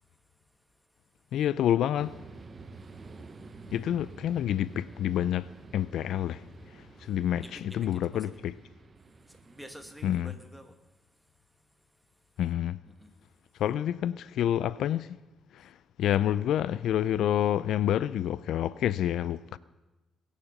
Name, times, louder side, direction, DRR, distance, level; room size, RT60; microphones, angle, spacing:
voice 1, 1.3-2.1 3.7-5.5 5.7-6.4 7.1-8.5 10.0-10.3 12.4-12.8 13.6-15.1 15.6-15.7 16.0-19.6, left 11 dB, 75° left, 0.3 m, -28 dB
sound 1, 2.0-10.3, right 4 dB, 35° right, 1.0 m, -49 dB
voice 2, 7.4-8.4 9.3-10.7 12.8-13.1, equal, ahead, 1.5 m, -49 dB
20.5 x 7.3 x 6.5 m
cardioid pair, 90°, 0 cm